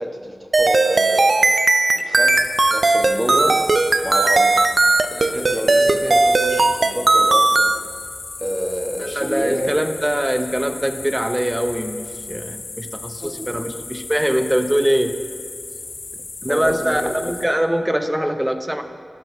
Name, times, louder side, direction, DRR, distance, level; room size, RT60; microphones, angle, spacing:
voice 1, 0.0-1.4 1.9-2.4 2.7-3.7 4.0-4.5 5.1-7.7 8.4-9.8 13.2-13.3 16.5-17.2, equal, 25° right, 1 dB, 1.2 m, -27 dB
sound 1, 0.5-7.8, right 2 dB, 60° right, 0.3 m, -16 dB
sound 2, 2.2-17.4, left 3 dB, 75° left, 0.5 m, -35 dB
voice 2, 9.0-15.2 16.4-18.8, equal, 10° right, 7 dB, 0.6 m, -22 dB
14.0 x 5.9 x 2.7 m, 2.3 s
cardioid pair, 40°, 0 cm